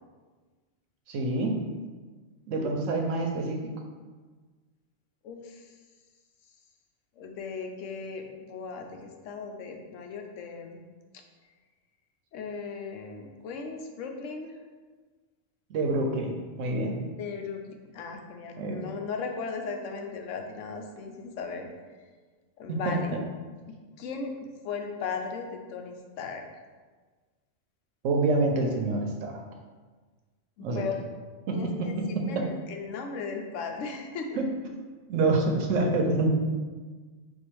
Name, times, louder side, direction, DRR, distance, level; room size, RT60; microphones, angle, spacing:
voice 1, 1.1-1.6 2.5-3.6 15.7-17.0 18.6-18.8 22.7-23.0 28.0-29.4 30.6-30.8 31.5-31.9 32.3-32.5 34.4-34.5 35.1-36.3, right 2 dB, 90° right, 2 dB, 1.0 m, -27 dB
voice 2, 5.2-5.7 7.2-10.8 12.3-14.6 17.2-21.7 22.6-23.1 23.7-26.4 30.6-31.0 31.5-34.4, left 5 dB, 85° left, 4 dB, 0.9 m, -37 dB
4.4 x 2.4 x 4.5 m, 1.4 s
omnidirectional pair, 1.3 m